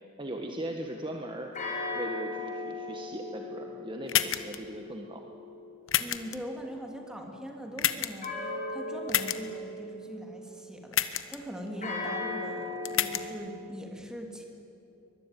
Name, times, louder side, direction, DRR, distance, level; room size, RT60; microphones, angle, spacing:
voice 1, 0.2-1.5 1.9-5.3, right 1 dB, 25° right, 2 dB, 1.4 m, -39 dB
sound 1, 1.5-6.4 8.2-10.6 11.8-13.3, left 2 dB, 35° left, 6.0 m, -38 dB
sound 2, 4.1-4.6 5.9-6.4 7.8-8.3 9.1-9.4 10.9-11.4 12.9-13.2, left 11 dB, 65° left, 1.1 m, -28 dB
voice 2, 6.0-11.0 11.3-14.5, equal, 5° right, 1 dB, 3.0 m, -41 dB
23.0 x 22.0 x 9.2 m, 2.7 s
head